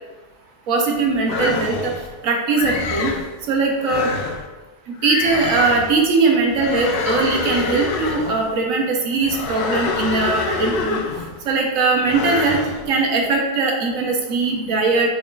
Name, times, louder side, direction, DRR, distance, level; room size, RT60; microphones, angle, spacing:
voice 1, 0.7-1.9 2.2-3.1 3.5-4.1 5.0-11.0 11.4-12.6 12.9-15.1, right 3 dB, 80° right, 1 dB, 1.2 m, -20 dB
sound 1, 1.3-2.1 2.6-3.3 3.8-4.5 5.0-6.0 6.5-8.5 9.2-11.4 12.0-12.8, left 4 dB, 60° left, 0.6 m, -26 dB
6.1 x 3.5 x 2.4 m, 1.2 s
omnidirectional pair, 1.4 m